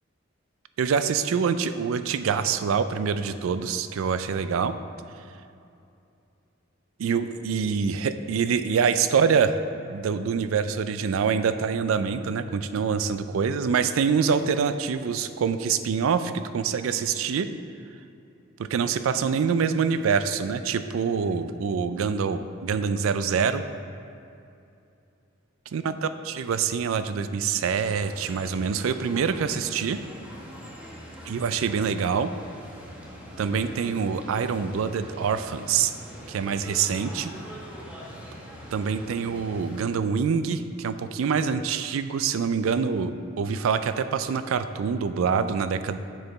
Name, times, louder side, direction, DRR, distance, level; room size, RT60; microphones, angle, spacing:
voice 1, 0.8-4.7 7.0-9.6 9.9-17.5 18.6-23.6 25.7-30.0 31.3-32.3 33.4-35.9 36.3-37.3 38.7-46.0, right 6 dB, 80° right, 11 dB, 0.4 m, -25 dB
sound 1, 27.6-39.8, equal, 5° right, 0.9 m, -43 dB
6.7 x 6.4 x 4.0 m, 2.6 s
head